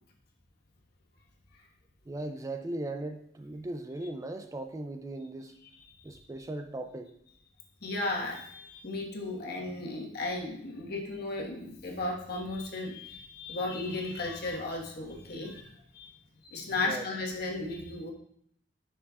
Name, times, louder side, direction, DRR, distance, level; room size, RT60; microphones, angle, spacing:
voice 1, 2.1-5.5 6.0-7.1 16.8-17.1, right 2 dB, 15° right, 7 dB, 0.4 m, -38 dB
voice 2, 7.8-16.1 16.4-18.1, left 2 dB, 55° left, 0 dB, 1.4 m, -35 dB
10.5 x 6.2 x 2.4 m, 0.69 s
head